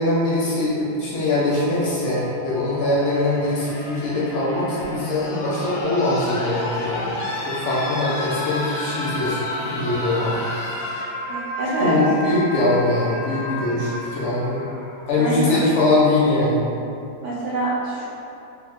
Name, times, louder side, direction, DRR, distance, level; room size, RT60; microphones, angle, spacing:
voice 1, 0.0-7.2 7.4-10.4 11.8-14.7 15.1-16.6, left 2 dB, 55° left, -7 dB, 0.9 m, -22 dB
sound 1, 1.3-15.2 16.5-16.6, left 1 dB, 75° left, 0.7 m, -32 dB
voice 2, 11.3-11.9 15.2-15.7 17.2-18.1, right 2 dB, 65° right, -7 dB, 0.7 m, -25 dB
3.0 x 2.3 x 3.5 m, 2.6 s
omnidirectional pair, 1.7 m